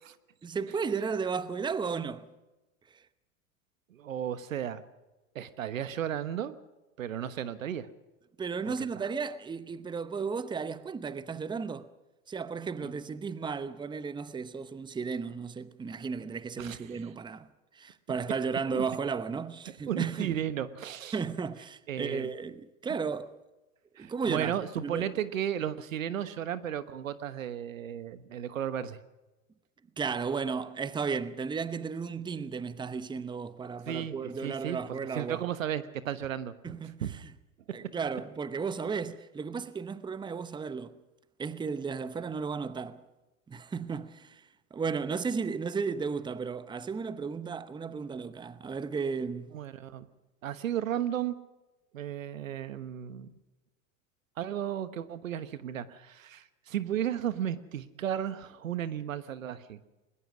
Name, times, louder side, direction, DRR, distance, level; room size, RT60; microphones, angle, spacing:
voice 1, 0.4-2.3 8.4-11.9 12.3-17.5 17.7-20.4 21.1-23.3 24.0-25.1 30.0-35.4 36.6-37.0 37.7-40.9 41.4-43.0 43.5-44.4 44.7-49.5, right 5 dB, 10° right, 0.8 m, -34 dB
voice 2, 3.9-4.8 5.3-6.5 7.0-7.9 8.6-9.1 16.6-17.1 18.7-18.9 19.9-21.2 21.9-22.3 24.0-29.0 33.9-36.5 37.0-37.2 49.5-50.1 50.4-51.3 51.9-53.3 54.4-59.8, right 10 dB, 85° right, 1.3 m, -34 dB
20.5 x 20.5 x 6.2 m
hypercardioid pair, 100°, 39 cm